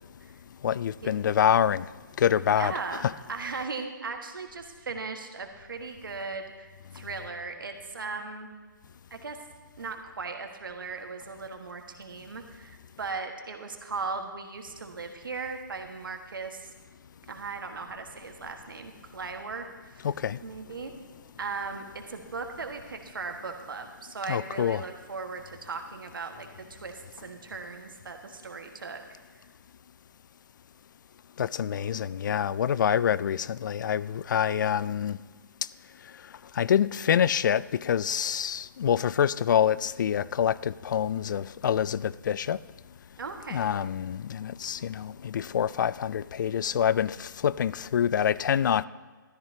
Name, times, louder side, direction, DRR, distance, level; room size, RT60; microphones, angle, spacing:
voice 1, 0.6-1.8 2.2-2.7 3.0-3.1 20.0-20.4 24.3-24.8 31.4-35.2 36.6-42.6 43.5-48.9, left 9 dB, 65° left, 0.4 m, -26 dB
voice 2, 2.6-8.5 9.1-9.4 9.8-16.7 17.3-20.1 20.4-20.9 21.4-29.2 43.2-43.7, right 4 dB, 80° right, 1.6 m, -38 dB
15.0 x 13.0 x 2.8 m
hypercardioid pair, 145°, 11 cm